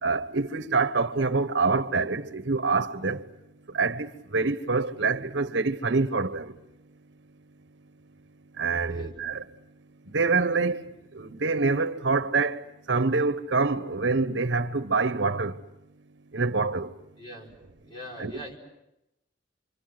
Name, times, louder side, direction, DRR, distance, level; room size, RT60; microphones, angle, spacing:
voice 1, 0.0-3.3 3.7-6.5 8.6-9.4 10.1-10.9 11.1-15.6 16.3-16.9 18.2-18.4, right 4 dB, 80° right, 1.2 m, -26 dB
voice 2, 8.8-9.2 17.2-17.5 17.8-18.6, equal, 25° left, 5.0 m, -42 dB
27.0 x 25.0 x 7.9 m
head